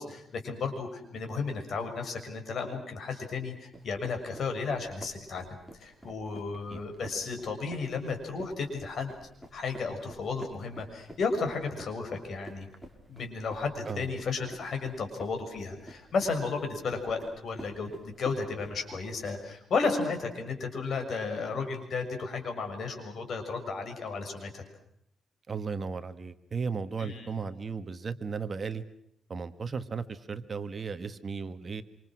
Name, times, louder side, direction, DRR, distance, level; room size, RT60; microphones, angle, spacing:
voice 1, 0.0-9.1 9.5-12.7 13.1-24.6 27.0-27.4, left 4 dB, 55° left, 5 dB, 6.6 m, -33 dB
sound 1, 3.7-19.4, equal, 5° left, 5.1 m, -50 dB
voice 2, 25.5-28.8 29.3-31.8, right 5 dB, 35° right, 10 dB, 1.6 m, -35 dB
27.0 x 27.0 x 6.3 m, 0.72 s
cardioid pair, 115°, 0 cm